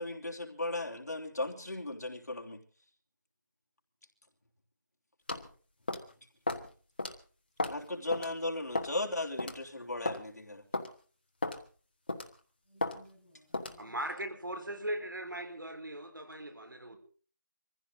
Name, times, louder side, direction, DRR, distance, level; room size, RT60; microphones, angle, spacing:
voice 1, 0.0-2.6 7.7-10.6, left 2 dB, 55° left, 3.4 m, -36 dB
sound 1, 5.3-5.5 5.9-6.1 6.5-6.7 7.0-7.1 7.6-7.8 8.1-8.3 8.7-9.0 9.4-9.5 10.0-10.2 10.7-10.9 11.4-11.6 12.1-12.3 12.8-13.0 13.5-13.8, left 2 dB, 30° left, 1.2 m, -33 dB
voice 2, 12.7-14.0 14.5-14.6 16.4-16.5 16.9-17.0, equal, 5° right, 5.2 m, -60 dB
voice 3, 13.8-17.0, right 1 dB, 80° right, 3.9 m, -39 dB
24.0 x 15.5 x 3.8 m
figure-of-eight pair, 175°, 11 cm